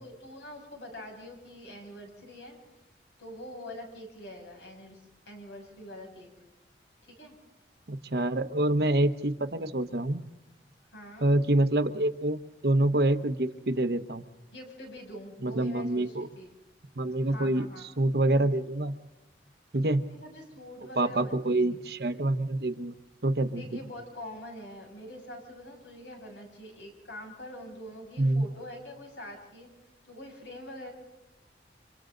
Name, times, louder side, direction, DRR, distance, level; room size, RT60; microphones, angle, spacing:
voice 1, 0.0-2.6 3.2-5.0 5.3-6.3 7.2-7.3 10.9-11.3 14.5-16.5 17.2-17.9 20.1-21.8 23.6-29.7 30.0-30.9, left 1 dB, 75° left, 1 dB, 7.1 m, -44 dB
voice 2, 7.9-10.2 11.2-14.2 15.4-16.3 17.0-17.7 18.0-18.9 19.7-20.0 21.0-22.9 23.2-23.8 28.2-28.5, right 1 dB, 60° right, 10 dB, 1.0 m, -26 dB
30.0 x 26.5 x 3.9 m, 0.95 s
head